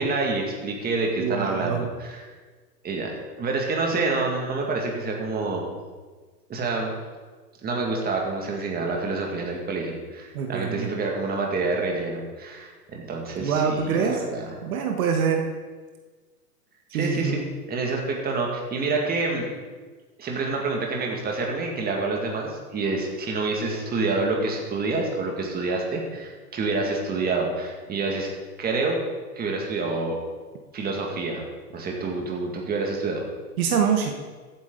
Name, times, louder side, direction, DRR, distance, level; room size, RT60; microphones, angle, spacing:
voice 1, 0.0-2.2 2.8-3.1 3.4-5.7 6.5-6.9 7.6-14.6 16.9-17.4 17.7-19.5 20.2-28.3 28.6-29.0 29.4-30.2 30.7-33.2, right 3 dB, 20° right, 0 dB, 2.1 m, -27 dB
voice 2, 1.2-1.9 10.3-10.9 13.4-14.2 14.6-15.5 16.9-17.5 33.6-34.1, right 6 dB, 60° right, 3 dB, 1.5 m, -24 dB
14.5 x 8.9 x 3.9 m, 1.4 s
hypercardioid pair, 120°, 49 cm